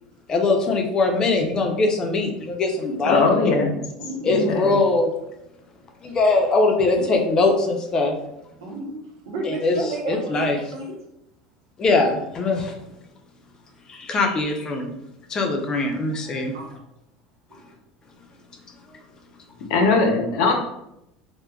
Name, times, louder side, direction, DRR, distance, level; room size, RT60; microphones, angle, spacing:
voice 1, 0.3-3.2 4.2-5.1 6.0-8.2 9.4-9.7 10.1-10.6 11.8-12.8 13.9-14.9 15.3-16.6, left 3 dB, 30° left, 3 dB, 0.5 m, -21 dB
voice 2, 3.0-3.8 4.3-4.8 19.7-20.5, left 3 dB, 75° left, 3 dB, 0.6 m, -20 dB
voice 3, 4.0-4.3 6.1-6.2 6.9-7.1 8.6-10.9 16.5-16.6, right 2 dB, 90° right, -1 dB, 0.7 m, -32 dB
3.2 x 2.1 x 2.3 m, 0.84 s
supercardioid pair, 115°, 2 cm